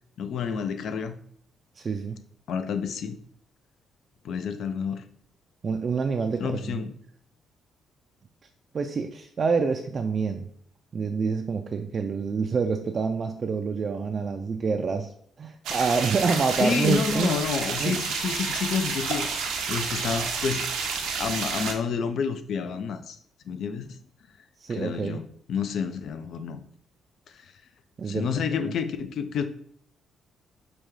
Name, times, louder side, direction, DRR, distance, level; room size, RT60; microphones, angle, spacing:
voice 1, 0.2-1.2 2.5-3.2 4.2-5.0 6.4-6.9 16.6-19.3 19.7-20.7 21.1-23.2 23.5-23.9 24.7-26.6 27.3-27.5 28.1-29.5, left 6 dB, 70° left, 10 dB, 0.4 m, -29 dB
voice 2, 1.8-2.2 5.6-6.8 8.7-10.5 10.9-15.1 15.4-17.4 17.8-18.0 24.6-25.2 28.0-28.7, right 5 dB, 45° right, 4 dB, 0.3 m, -27 dB
sound 1, 15.6-21.7, right 5 dB, 90° right, 0.6 m, -30 dB
sound 2, 16.4-17.0 17.9-19.4 20.0-20.4, left 2 dB, 90° left, 1.3 m, -41 dB
5.0 x 2.3 x 3.1 m, 0.63 s
cardioid pair, 90°, 0 cm